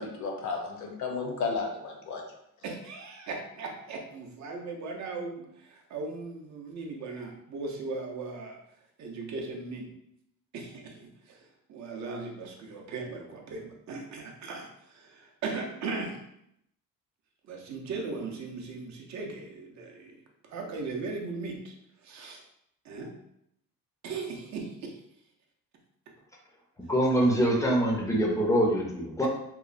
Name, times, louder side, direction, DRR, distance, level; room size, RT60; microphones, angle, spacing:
voice 1, 0.0-2.2, left 4 dB, 55° left, 2 dB, 0.6 m, -33 dB
voice 2, 2.6-8.6 9.0-9.9 10.5-11.4 11.7-16.2 17.5-20.1 20.5-21.7 22.0-22.4 22.9-23.1 24.0-24.9, right 3 dB, 50° right, 1 dB, 0.5 m, -38 dB
voice 3, 26.9-29.3, right 1 dB, 10° left, -2 dB, 0.4 m, -24 dB
3.0 x 2.0 x 2.4 m, 0.76 s
cardioid pair, 135°, 36 cm